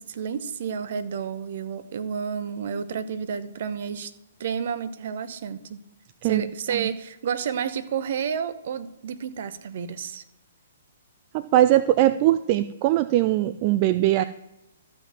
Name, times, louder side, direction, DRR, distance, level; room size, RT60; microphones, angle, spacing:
voice 1, 0.0-4.1 4.4-5.8 6.2-10.2, right 7 dB, 55° right, 14 dB, 1.0 m, -30 dB
voice 2, 11.3-14.2, right 14 dB, 35° right, 12 dB, 0.4 m, -21 dB
13.0 x 5.8 x 7.5 m, 0.90 s
figure-of-eight pair, 120°, 0 cm